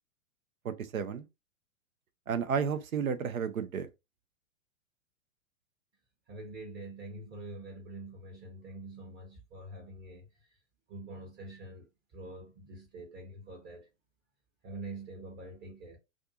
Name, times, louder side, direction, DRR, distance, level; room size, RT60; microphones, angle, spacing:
voice 1, 0.6-1.3 2.3-3.9, right 7 dB, 80° right, 0.6 m, -32 dB
voice 2, 6.3-10.6 10.9-13.9 14.6-16.0, right 2 dB, 25° right, 0.7 m, -45 dB
2.5 x 2.4 x 2.6 m
figure-of-eight pair, 110°, 41 cm